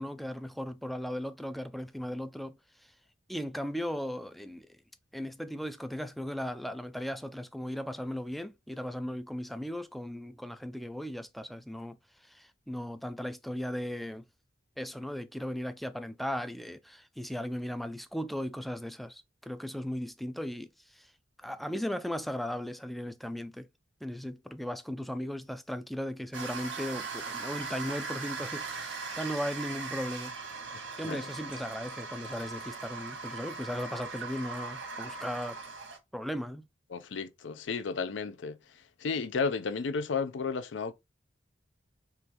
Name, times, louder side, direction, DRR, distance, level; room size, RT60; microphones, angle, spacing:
voice 1, 0.0-2.6 3.3-4.8 5.1-12.0 12.2-14.2 14.8-21.1 21.4-23.7 24.0-30.3 31.0-35.6 36.1-36.7, equal, ahead, 0.3 m, -37 dB
sound 1, 26.3-36.0, right 4 dB, 90° right, 1.4 m, -39 dB
voice 2, 36.9-38.6 39.0-40.9, left 5 dB, 70° left, 0.5 m, -33 dB
3.7 x 3.0 x 2.8 m
head